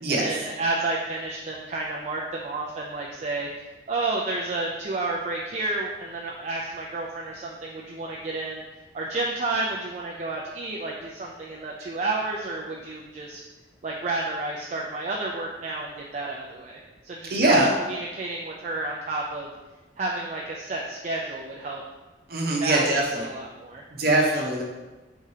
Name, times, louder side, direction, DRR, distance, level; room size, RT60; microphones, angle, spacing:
voice 1, 0.1-8.6 8.9-13.4 13.8-19.5 20.0-21.8 22.6-23.0 23.2-23.8, right 2 dB, 40° right, -2 dB, 0.4 m, -31 dB
voice 2, 17.3-17.7 22.3-23.3 24.0-24.6, right 1 dB, 55° right, -1 dB, 0.8 m, -22 dB
4.8 x 3.6 x 2.8 m, 1.1 s
head